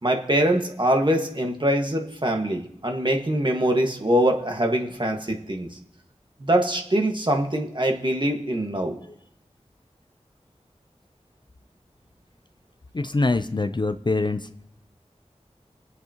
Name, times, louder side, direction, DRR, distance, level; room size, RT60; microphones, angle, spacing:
voice 1, 0.0-5.7 6.4-9.0, right 1 dB, 40° right, 2 dB, 1.7 m, -23 dB
voice 2, 12.9-14.5, left 3 dB, 40° left, 11 dB, 0.5 m, -24 dB
23.0 x 8.3 x 3.0 m, 0.71 s
wide cardioid pair, 45°, 12 cm